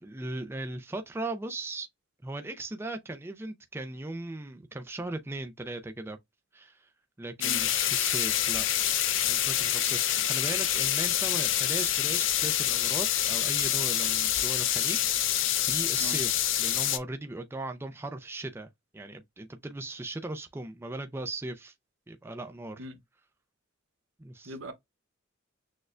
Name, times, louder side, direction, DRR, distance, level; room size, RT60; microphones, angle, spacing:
voice 1, 0.0-1.9 2.2-6.2 6.5-6.9 7.2-8.7 9.1-21.7 22.1-22.8 24.2-24.5, right 2 dB, 10° right, 0.4 m, -38 dB
sound 1, 7.4-17.0, left 11 dB, 65° left, 0.5 m, -27 dB
voice 2, 7.4-7.6 15.9-16.2 22.8-23.0 24.4-24.7, equal, 70° right, 0.8 m, -40 dB
6.3 x 2.1 x 2.4 m
head